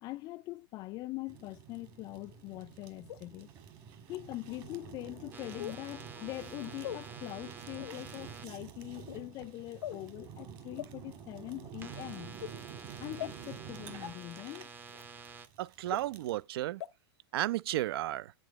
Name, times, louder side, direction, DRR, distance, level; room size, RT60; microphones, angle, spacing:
voice 1, 0.0-3.5 4.1-12.4 13.0-14.7, left 18 dB, 30° left, 0.3 m, -43 dB
Fire, 1.3-16.4, right 8 dB, 35° right, 1.5 m, -49 dB
sound 1, 3.1-3.2 4.1-4.2 5.6-5.8 6.8-7.0 7.8-8.0 9.0-9.2 9.8-10.0 10.8-10.9 11.5-11.7 12.4-12.5 13.2-13.3 14.0-14.1 15.0-15.1 15.9-16.0 16.8-16.9 17.4-17.5, left 11 dB, 80° left, 0.8 m, -40 dB
sound 2, 5.3-8.5 11.8-15.5, right 5 dB, 15° right, 0.6 m, -50 dB
voice 2, 15.6-16.8 17.3-18.3, right 14 dB, 65° right, 0.4 m, -33 dB
8.3 x 6.9 x 3.0 m
hypercardioid pair, 135°, 13 cm